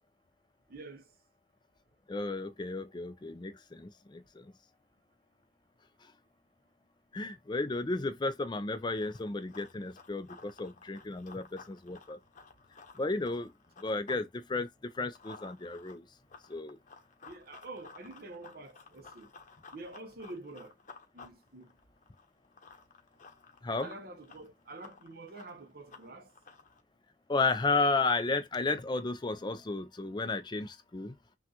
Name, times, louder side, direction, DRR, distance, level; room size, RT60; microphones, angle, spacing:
voice 1, 0.7-1.1 17.2-19.3 19.7-20.7 21.1-21.7 23.8-26.3, right 2 dB, 55° right, 0.9 m, -47 dB
voice 2, 2.1-4.4 7.1-12.2 13.0-13.5 13.8-14.7 15.0-16.0 16.5-16.8 23.6-23.9 27.3-31.1, left 3 dB, 25° left, 0.4 m, -33 dB
Run, 8.8-14.3 14.6-26.8, left 4 dB, 45° left, 0.9 m, -55 dB
5.9 x 2.4 x 2.7 m
head